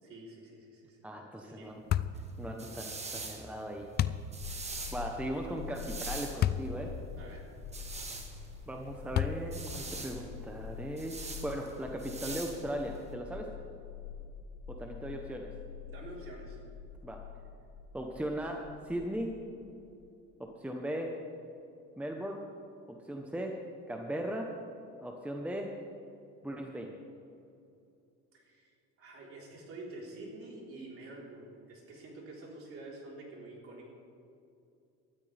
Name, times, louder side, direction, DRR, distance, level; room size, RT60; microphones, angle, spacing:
voice 1, 0.0-1.0 1.4-1.8 7.2-7.4 15.9-16.6 28.3-28.7 29.0-33.9, right 2 dB, 45° right, -3 dB, 3.9 m, -48 dB
voice 2, 1.0-1.8 2.4-3.9 4.9-6.9 8.7-13.5 14.7-15.5 17.0-17.2 17.9-19.3 20.4-21.1 22.0-22.5 22.9-23.6 23.9-24.5 25.0-25.8 26.4-27.0, right 1 dB, 5° right, 2 dB, 0.9 m, -38 dB
sound 1, 1.9-2.2 4.0-4.3 6.4-6.7 7.3-7.4 9.1-9.6, left 11 dB, 35° left, 0.4 m, -29 dB
sound 2, 2.1-13.1, right 3 dB, 20° right, 1.5 m, -44 dB
sound 3, 4.4-20.1, left 7 dB, 90° left, 3.9 m, -46 dB
19.0 x 13.0 x 3.4 m, 2.6 s
cardioid pair, 125°, 31 cm